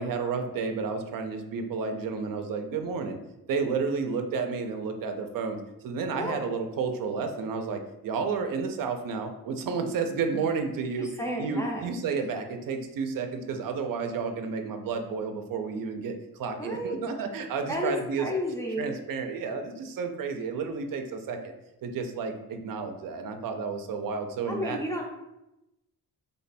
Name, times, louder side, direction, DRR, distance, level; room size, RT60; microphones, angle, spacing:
voice 1, 0.0-3.2 3.5-5.6 5.8-11.1 11.4-18.3 18.8-21.5 21.8-24.8, right 5 dB, 75° right, 6 dB, 0.5 m, -31 dB
voice 2, 11.0-11.9 16.6-17.0 17.7-19.0 24.5-25.0, equal, 10° left, -1 dB, 0.4 m, -32 dB
3.4 x 2.2 x 4.1 m, 0.90 s
wide cardioid pair, 175°, 34 cm